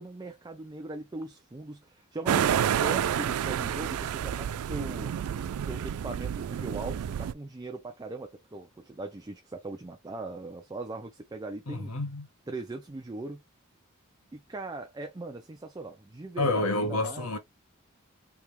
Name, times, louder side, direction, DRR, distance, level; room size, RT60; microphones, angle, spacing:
voice 1, 0.0-5.1 5.7-11.9 12.5-13.4 14.3-17.3, right 2 dB, 20° right, 0.5 m, -39 dB
sound 1, 2.3-7.3, right 9 dB, 90° right, 0.3 m, -29 dB
voice 2, 11.7-12.3 16.4-17.4, left 2 dB, 75° left, 1.1 m, -29 dB
3.5 x 2.9 x 2.9 m
head